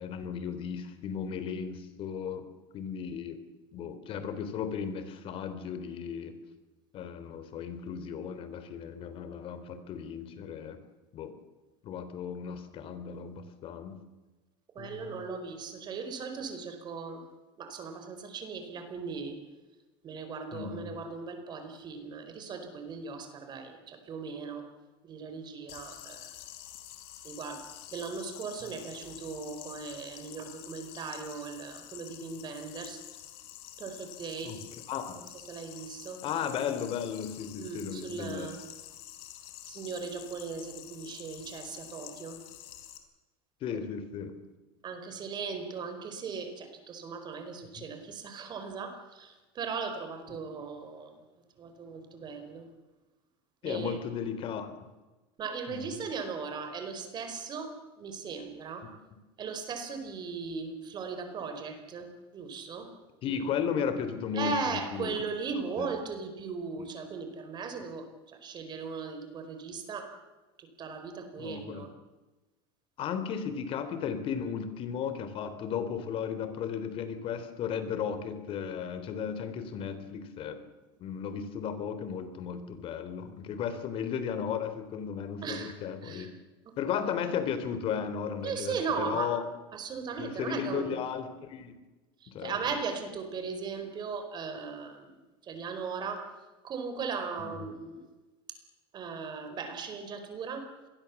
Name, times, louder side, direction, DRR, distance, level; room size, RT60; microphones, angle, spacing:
voice 1, 0.0-3.4 3.7-6.3 6.9-10.8 11.1-11.4 11.8-14.0 14.8-15.2 20.5-21.0 34.4-34.6 34.9-35.2 36.2-38.5 43.6-44.3 50.3-50.4 53.6-54.7 55.7-56.0 63.2-65.1 65.8-65.9 66.8-66.9 71.4-71.9 73.0-80.6 81.0-86.3 86.8-89.4 90.2-91.7 92.3-92.5 97.4-97.6, left 7 dB, 45° left, 11 dB, 3.7 m, -35 dB
voice 2, 14.7-17.2 17.6-19.4 20.0-24.6 25.0-26.3 27.2-33.0 33.8-34.6 35.1-36.3 37.6-38.6 39.7-42.4 43.7-43.9 44.8-51.1 51.6-52.7 53.6-54.0 55.4-58.9 59.4-62.9 64.3-70.1 70.6-71.9 83.6-83.7 85.4-85.7 86.0-86.3 86.6-87.0 88.4-89.3 89.7-90.9 92.2-95.2 95.4-96.3 96.6-98.0 98.9-100.7, right 5 dB, 35° right, 7 dB, 4.7 m, -38 dB
sound 1, 25.7-43.0, left 12 dB, 75° left, 4.0 m, -48 dB
26.5 x 21.0 x 7.2 m, 1.2 s
supercardioid pair, 130°, 13 cm